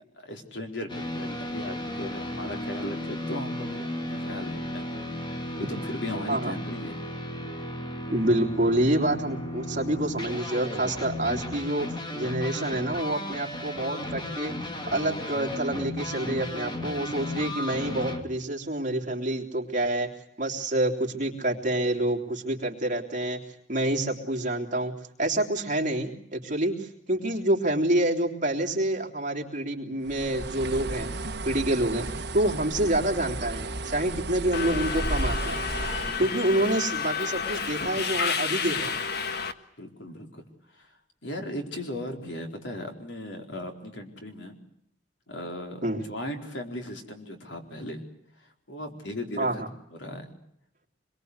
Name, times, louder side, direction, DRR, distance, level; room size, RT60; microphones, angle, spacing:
voice 1, 0.2-4.8 5.2-7.0 36.0-36.4 39.8-40.4 40.7-40.9 41.2-44.6 45.3-48.0 48.4-49.6 49.9-50.4, left 1 dB, 80° left, 3 dB, 4.4 m, -37 dB
sound 1, 0.9-18.2, left 1 dB, 25° left, 2.6 m, -35 dB
voice 2, 8.1-14.6 14.9-20.1 20.4-23.4 23.7-24.9 25.2-31.1 31.5-32.1 32.3-35.6 36.2-39.0 45.8-46.0 49.4-49.7, right 1 dB, 45° right, 2 dB, 3.3 m, -27 dB
Bird, 30.1-36.3, right 2 dB, 60° right, 1.3 m, -33 dB
Subway metro underground, 34.5-39.5, left 6 dB, 60° left, 1.5 m, -30 dB
25.5 x 22.5 x 8.1 m, 0.72 s
head